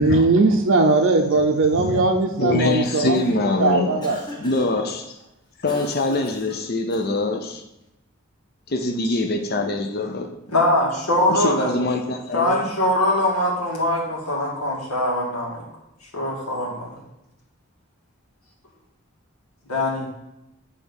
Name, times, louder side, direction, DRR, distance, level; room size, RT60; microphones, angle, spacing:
voice 1, 0.0-3.2 3.6-4.2, right 3 dB, 60° right, 0.6 m, -19 dB
voice 2, 1.7-2.1 2.4-4.0 4.4-5.2 5.6-7.6 8.7-10.3 11.3-12.7, left 2 dB, 45° left, 0.6 m, -24 dB
Cough, 2.5-3.5 4.0-4.8 5.7-7.3, left 1 dB, 20° left, 1.0 m, -39 dB
voice 3, 10.5-11.8 12.3-15.6 16.1-17.0 19.7-20.1, left 1 dB, 85° left, 2.1 m, -22 dB
8.4 x 3.4 x 5.4 m
head